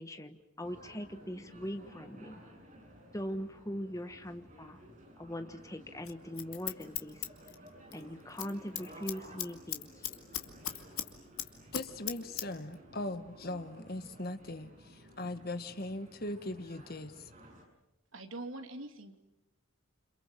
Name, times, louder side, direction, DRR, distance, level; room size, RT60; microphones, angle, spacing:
voice 1, 0.0-2.4 3.1-4.8 5.2-7.2 7.9-9.9, equal, 15° left, 8 dB, 1.3 m, -41 dB
sound 1, 0.6-17.6, right 1 dB, 35° right, 6.9 m, -55 dB
Scissors, 6.0-8.0 8.3-8.5 8.8-11.1 11.4-12.5 12.7-12.8, left 11 dB, 90° left, 2.3 m, -37 dB
voice 2, 11.7-17.3, left 1 dB, 45° left, 10 dB, 1.6 m, -40 dB
voice 3, 18.1-19.1, right 2 dB, 75° right, 6 dB, 2.8 m, -43 dB
29.0 x 27.0 x 7.5 m, 0.91 s
head